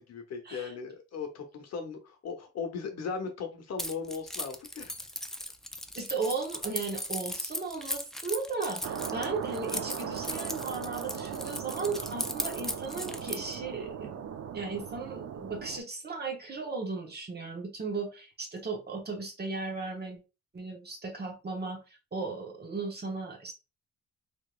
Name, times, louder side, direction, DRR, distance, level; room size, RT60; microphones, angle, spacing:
voice 1, 0.0-4.9, left 5 dB, 60° left, 4 dB, 0.9 m, -38 dB
Keys jangling, 3.8-13.6, left 1 dB, ahead, 0.3 m, -37 dB
voice 2, 5.9-14.2 14.5-20.2 20.5-21.8 22.1-23.5, right 4 dB, 35° right, 3 dB, 1.1 m, -36 dB
sound 1, 8.8-15.8, right 8 dB, 55° right, 0.6 m, -38 dB
3.5 x 2.9 x 2.4 m, 0.28 s
cardioid pair, 90°, 30 cm